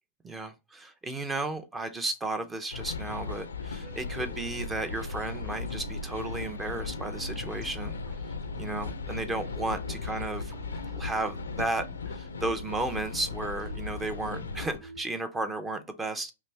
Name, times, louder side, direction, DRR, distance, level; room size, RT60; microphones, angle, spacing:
voice 1, 0.2-8.0 8.6-10.5 10.9-16.3, right 2 dB, 15° right, 0.5 m, -34 dB
sound 1, 2.7-14.8, left 4 dB, 90° left, 0.4 m, -37 dB
sound 2, 3.8-15.0, right 2 dB, 30° right, 0.8 m, -49 dB
3.1 x 2.6 x 3.2 m
hypercardioid pair, 115°, 0 cm